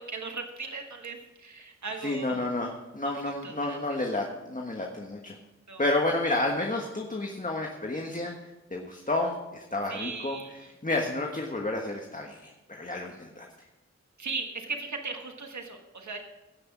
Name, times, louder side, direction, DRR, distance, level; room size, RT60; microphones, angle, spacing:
voice 1, 0.0-2.4 3.0-3.1 3.4-4.0 5.7-5.8 9.9-10.7 14.2-16.2, right 4 dB, 75° right, 3 dB, 1.5 m, -38 dB
voice 2, 2.0-5.3 5.8-8.3 8.7-10.4 10.8-12.5 12.8-13.5, left 2 dB, 25° left, 1 dB, 1.4 m, -30 dB
16.5 x 6.2 x 6.0 m, 1.0 s
wide cardioid pair, 70°, 29 cm